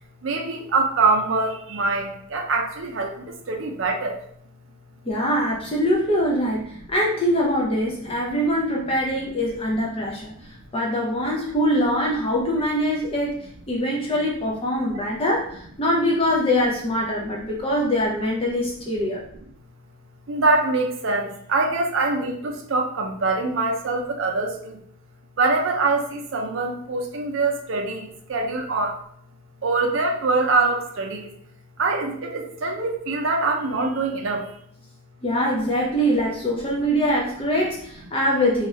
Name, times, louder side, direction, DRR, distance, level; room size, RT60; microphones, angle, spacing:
voice 1, 0.2-4.2 14.9-15.0 20.3-24.8 25.4-29.0 29.6-31.3 31.8-34.5, right 3 dB, 65° right, 3 dB, 0.5 m, -24 dB
voice 2, 5.1-10.3 10.7-13.4 13.7-19.2 35.2-38.7, equal, 25° left, -3 dB, 0.4 m, -23 dB
2.6 x 2.4 x 3.1 m, 0.65 s
head